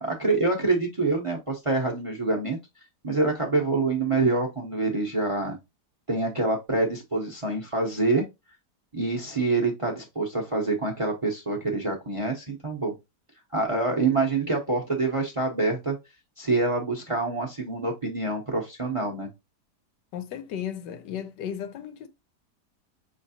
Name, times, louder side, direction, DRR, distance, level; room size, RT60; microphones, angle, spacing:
voice 1, 0.0-2.6 3.0-5.6 6.1-8.2 8.9-12.9 13.5-16.0 16.4-19.3, right 3 dB, 30° right, 0.7 m, -26 dB
voice 2, 20.1-22.1, left 9 dB, 90° left, 1.4 m, -35 dB
5.7 x 3.2 x 2.7 m
omnidirectional pair, 1.8 m